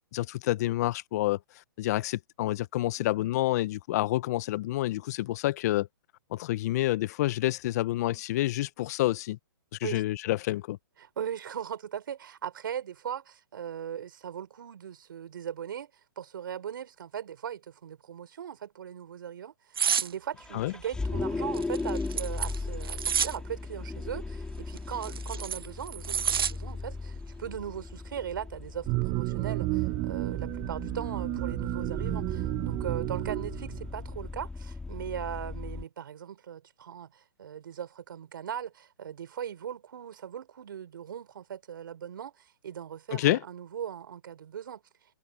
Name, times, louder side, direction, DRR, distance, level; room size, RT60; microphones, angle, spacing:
voice 1, 0.1-1.4 1.8-5.9 6.3-9.4 9.8-10.8 20.5-20.7 43.1-43.4, left 16 dB, 45° left, 0.8 m, -28 dB
voice 2, 11.0-15.9 16.2-44.8, right 9 dB, 70° right, 4.4 m, -39 dB
sound 1, 19.8-20.1 21.5-23.4 24.8-26.5 26.9-27.2, right 7 dB, 85° right, 0.5 m, -29 dB
Vehicle, 20.4-35.8, left 3 dB, 5° left, 2.0 m, -37 dB
sound 2, 28.9-34.2, right 23 dB, 30° right, 0.7 m, -32 dB
hypercardioid pair, 135°, 12 cm